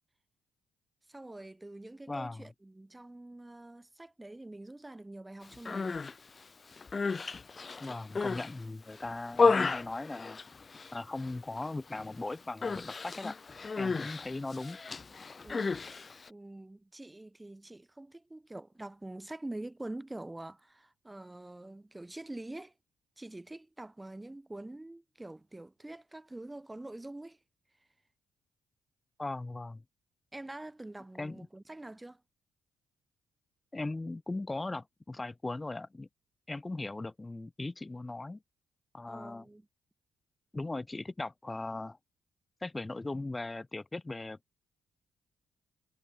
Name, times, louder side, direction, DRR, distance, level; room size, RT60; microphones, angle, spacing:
voice 1, 1.1-6.0 15.4-16.0 16.3-22.7 23.2-27.4 30.3-32.2 39.1-39.7, right 2 dB, 15° right, 2.1 m, -45 dB
voice 2, 2.1-2.5 7.8-10.4 10.9-13.4 13.8-14.8 29.2-29.8 31.2-31.5 33.7-36.1 36.5-38.4 38.9-39.5 40.5-42.0 42.6-44.4, left 2 dB, 20° left, 2.2 m, -38 dB
Human voice, 5.5-6.1 6.7-8.5 8.9-10.9 11.2-11.7 11.9-12.2 12.6-16.3, left 4 dB, 40° left, 0.8 m, -32 dB
supercardioid pair, 55°, 0 cm